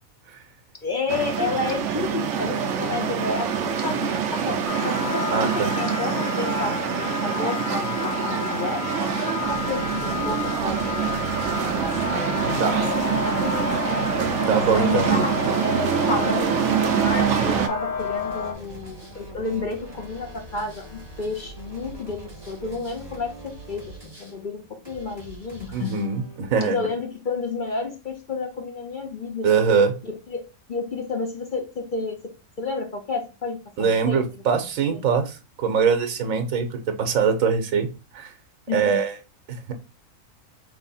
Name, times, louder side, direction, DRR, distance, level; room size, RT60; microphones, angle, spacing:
voice 1, 0.8-11.1 11.5-11.9 12.8-13.7 14.7-15.3 15.6-23.9 24.2-25.9 26.6-29.5 30.0-30.4 30.7-32.2 32.6-34.2 34.9-35.0 38.7-39.0, left 3 dB, 45° left, 4 dB, 0.7 m, -31 dB
sound 1, 1.1-17.7, right 8 dB, 65° right, 1.0 m, -25 dB
sound 2, 4.6-18.5, left 5 dB, 80° left, 1.3 m, -31 dB
voice 2, 5.3-5.7 12.6-12.8 14.5-15.1 25.7-26.9 29.4-29.9 33.8-37.9 38.1-38.3 38.7-39.1 39.5-39.7, right 6 dB, 85° right, 7 dB, 1.2 m, -22 dB
sound 3, 8.9-26.6, right 1 dB, 20° right, 1.2 m, -43 dB
3.4 x 3.4 x 4.1 m, 0.30 s
omnidirectional pair, 1.4 m